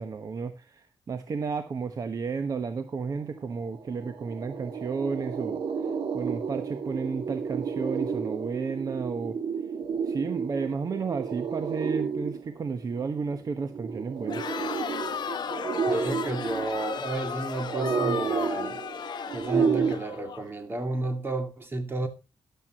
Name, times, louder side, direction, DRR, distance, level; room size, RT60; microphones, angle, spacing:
voice 1, 0.0-5.6 6.1-9.4 10.0-14.4, right 5 dB, 45° right, 1.1 m, -32 dB
sound 1, 3.4-3.5 3.7-19.9, right 6 dB, 85° right, 1.8 m, -31 dB
Crowd, 14.2-20.4, left 7 dB, 60° left, 1.1 m, -35 dB
voice 2, 15.9-18.8 19.3-22.1, right 2 dB, 25° right, 2.4 m, -31 dB
13.5 x 10.5 x 3.0 m
wide cardioid pair, 140°, 8 cm